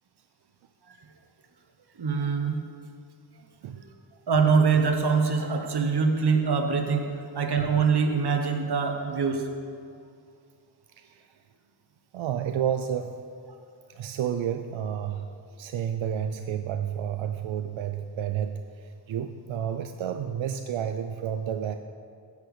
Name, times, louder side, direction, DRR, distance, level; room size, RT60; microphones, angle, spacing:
voice 1, 2.0-2.6 3.7-3.9 4.3-7.1 7.3-9.5, right 5 dB, 60° right, 5 dB, 1.2 m, -24 dB
voice 2, 11.0-11.3 12.1-13.2 13.9-21.8, right 9 dB, 90° right, 7 dB, 0.5 m, -31 dB
10.5 x 8.2 x 5.0 m, 2.3 s
wide cardioid pair, 90°, 45 cm